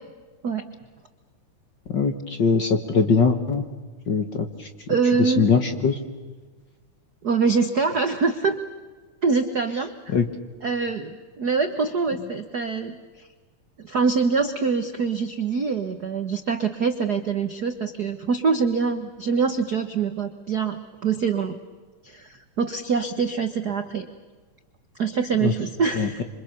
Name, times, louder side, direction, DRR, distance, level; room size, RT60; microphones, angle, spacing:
voice 1, 1.9-3.7 4.1-4.7 5.2-6.0 10.1-10.2 25.4-25.5 25.9-26.2, left 5 dB, 45° left, 7 dB, 1.7 m, -22 dB
voice 2, 4.9-5.5 7.2-8.6 9.2-9.9 10.6-13.3 13.8-21.6 22.0-24.1 25.0-26.2, right 5 dB, 60° right, 8 dB, 1.0 m, -24 dB
27.0 x 26.5 x 6.8 m, 1.3 s
omnidirectional pair, 3.6 m